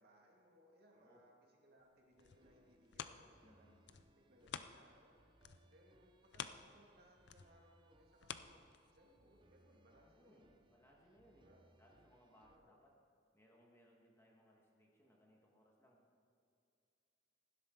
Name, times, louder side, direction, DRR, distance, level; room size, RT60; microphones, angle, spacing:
voice 1, 0.0-3.7 4.3-5.1 5.6-10.6 11.4-11.7 12.5-12.7, equal, 55° right, -1 dB, 2.2 m, -68 dB
sound 1, 1.9-5.1 5.4-9.2 9.7-9.8, left 8 dB, 60° left, 0.5 m, -51 dB
sound 2, 2.2-12.6, right 1 dB, 25° right, 0.6 m, -72 dB
voice 2, 3.4-3.9 10.0-11.5 11.8-13.0 13.3-16.0, equal, 15° left, -2 dB, 1.7 m, -68 dB
16.0 x 11.5 x 3.9 m, 2.6 s
head